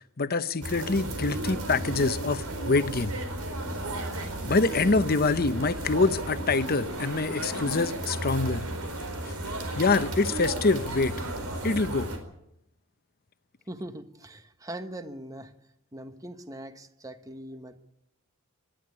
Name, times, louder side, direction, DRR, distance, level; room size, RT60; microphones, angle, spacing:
voice 1, 0.0-3.1 4.4-8.6 9.8-11.1 11.6-12.1, left 3 dB, 45° left, 0.9 m, -25 dB
sound 1, 0.6-12.2, right 1 dB, 90° right, 4.5 m, -34 dB
voice 2, 13.7-15.5 15.9-17.9, right 1 dB, 15° right, 1.2 m, -41 dB
21.0 x 13.0 x 9.6 m
head